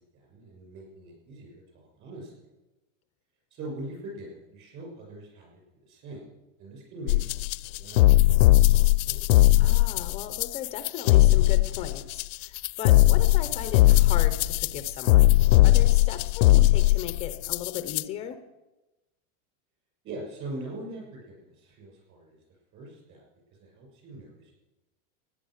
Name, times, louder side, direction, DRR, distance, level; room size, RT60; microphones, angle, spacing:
voice 1, 0.1-2.5 3.5-6.3 6.6-7.2 7.6-8.8 9.1-9.2 20.0-22.4 22.7-23.2 23.6-24.5, right 2 dB, 35° right, -1 dB, 6.6 m, -42 dB
sound 1, 7.1-18.0, left 18 dB, 75° left, 0.5 m, -19 dB
voice 2, 9.6-18.4, left 10 dB, 15° left, 10 dB, 0.4 m, -37 dB
sound 2, 12.3-15.9, equal, 85° right, 5.9 m, -45 dB
15.5 x 10.0 x 6.4 m, 1.1 s
supercardioid pair, 165°, 38 cm